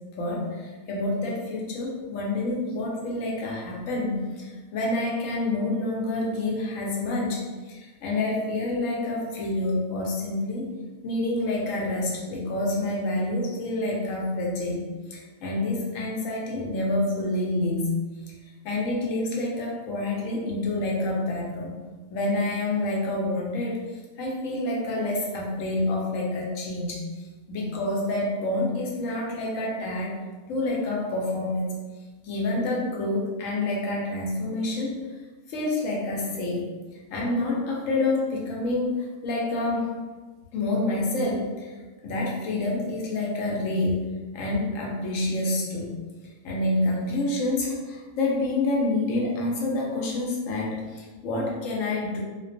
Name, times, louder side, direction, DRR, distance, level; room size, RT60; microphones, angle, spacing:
voice 1, 0.2-10.7 11.0-14.8 15.1-17.9 18.3-18.4 18.6-21.7 22.1-30.1 30.5-31.8 32.2-35.0 35.5-36.7 37.1-40.0 40.5-41.8 42.0-44.0 44.3-46.0 46.4-52.2, left 2 dB, 70° left, -3 dB, 0.9 m, -28 dB
2.4 x 2.2 x 2.5 m, 1.3 s
omnidirectional pair, 1.5 m